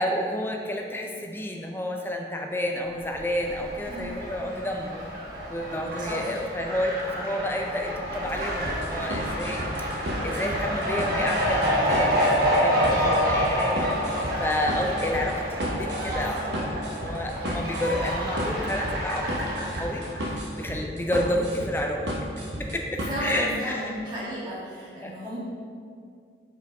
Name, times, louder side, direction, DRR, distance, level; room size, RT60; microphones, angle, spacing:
voice 1, 0.0-5.1 5.5-9.6 10.0-22.1 22.7-23.9 25.0-25.1, left 1 dB, 10° left, 2 dB, 0.4 m, -30 dB
Fowl, 3.0-20.3, equal, 55° right, 1.2 m, -28 dB
voice 2, 3.9-4.2 6.0-6.4 15.6-15.7 16.0-16.6 23.1-25.4, equal, 25° right, -8 dB, 1.6 m, -34 dB
sound 1, 8.7-23.4, equal, 70° right, 0.9 m, -33 dB
5.1 x 4.4 x 5.2 m, 2.2 s
head